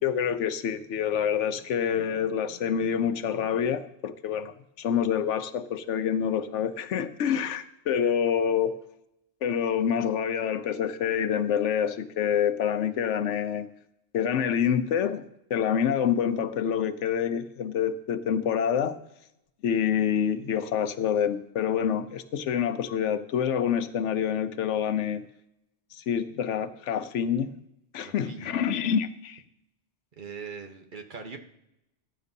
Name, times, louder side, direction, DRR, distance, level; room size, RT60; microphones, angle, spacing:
voice 1, 0.0-8.7 9.4-13.7 14.1-15.2 15.5-19.0 19.6-25.3 25.9-27.5 27.9-29.4, left 8 dB, 85° left, 1.0 m, -27 dB
voice 2, 28.0-28.6 30.2-31.4, right 5 dB, 45° right, 1.1 m, -41 dB
15.0 x 10.5 x 2.7 m
omnidirectional pair, 1.2 m